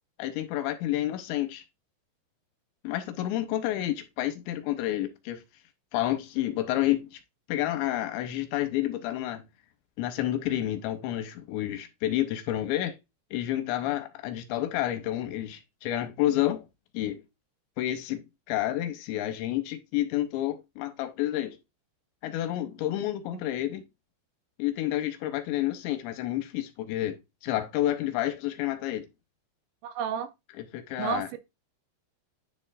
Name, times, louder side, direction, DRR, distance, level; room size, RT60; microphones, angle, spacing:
voice 1, 0.2-1.6 2.8-5.4 5.9-7.1 7.5-9.4 10.0-13.0 13.3-16.6 16.9-17.2 17.8-21.6 22.2-23.8 24.6-29.1 30.7-31.3, left 13 dB, 85° left, 2.9 m, -29 dB
voice 2, 29.8-30.3 31.0-31.4, right 8 dB, 80° right, 2.7 m, -31 dB
9.9 x 4.5 x 2.4 m
omnidirectional pair, 5.4 m